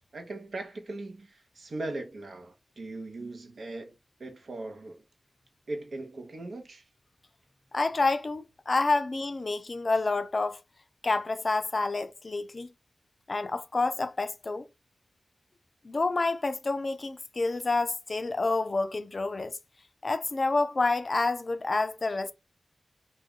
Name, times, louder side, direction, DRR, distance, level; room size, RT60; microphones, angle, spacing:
voice 1, 0.1-3.9 4.2-5.0 5.7-6.8, right 2 dB, 75° right, 0.6 m, -39 dB
voice 2, 7.7-10.6 11.0-12.7 13.3-14.7 15.8-19.5 20.0-22.3, left 3 dB, 50° left, 0.3 m, -28 dB
2.3 x 2.1 x 3.5 m
wide cardioid pair, 75°, 0 cm